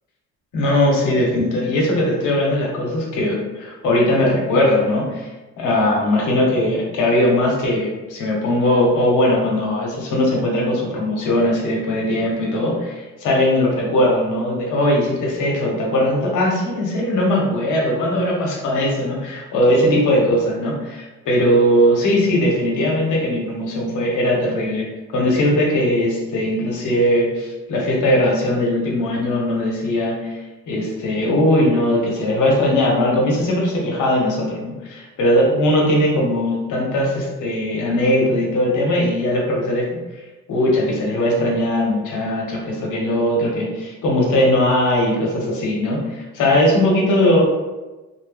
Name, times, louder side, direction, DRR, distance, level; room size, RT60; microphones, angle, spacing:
voice 1, 0.5-5.3 5.6-39.9 40.5-47.4, left 1 dB, 85° left, -2 dB, 0.9 m, -19 dB
2.6 x 2.1 x 3.4 m, 1.2 s
cardioid pair, 90°, 30 cm